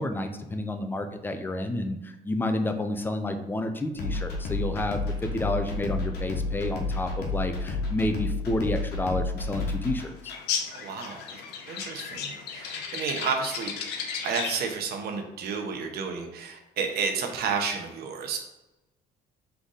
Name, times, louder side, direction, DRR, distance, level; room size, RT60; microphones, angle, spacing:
voice 1, 0.0-10.3, left 1 dB, 10° left, 6 dB, 0.5 m, -30 dB
sound 1, 3.9-10.4, left 3 dB, 70° left, 1.2 m, -31 dB
sound 2, 10.2-14.7, left 6 dB, 85° left, 0.6 m, -34 dB
voice 2, 10.7-13.7 14.0-18.4, right 5 dB, 70° right, 4 dB, 0.9 m, -31 dB
3.7 x 3.4 x 4.0 m, 1.0 s
cardioid pair, 110°, 17 cm